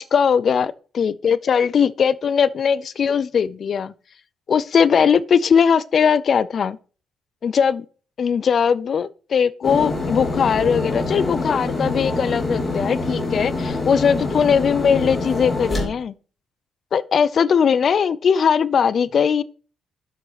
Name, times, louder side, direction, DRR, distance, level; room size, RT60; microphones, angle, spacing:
voice 1, 0.0-3.9 4.5-6.8 7.4-7.9 8.2-16.1 16.9-19.4, left 7 dB, 50° left, 0.4 m, -19 dB
sound 1, 9.6-15.9, left 2 dB, 25° left, 3.0 m, -25 dB
7.8 x 7.6 x 4.1 m
cardioid pair, 90°, 0 cm